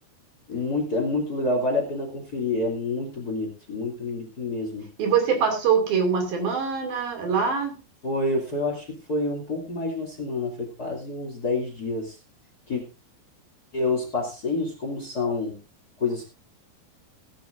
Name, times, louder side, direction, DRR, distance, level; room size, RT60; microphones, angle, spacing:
voice 1, 0.5-4.9 8.0-12.1 12.7-12.8 13.7-15.6 16.0-16.3, left 2 dB, 25° left, 2 dB, 2.8 m, -28 dB
voice 2, 5.0-7.8, right 6 dB, 65° right, 4 dB, 4.3 m, -23 dB
18.0 x 11.5 x 2.6 m, 0.28 s
omnidirectional pair, 4.5 m